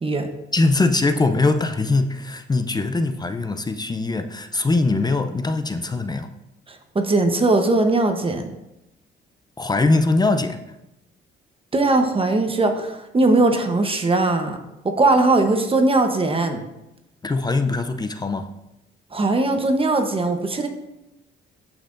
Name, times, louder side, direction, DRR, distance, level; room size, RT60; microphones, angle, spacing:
voice 1, 0.5-6.3 9.6-10.6 17.2-18.5, left 3 dB, 20° left, 9 dB, 0.6 m, -21 dB
voice 2, 6.7-8.5 11.7-14.6 14.8-16.6 19.1-20.7, right 2 dB, 25° right, 5 dB, 1.0 m, -20 dB
14.5 x 5.8 x 2.6 m, 0.91 s
cardioid pair, 90°, 20 cm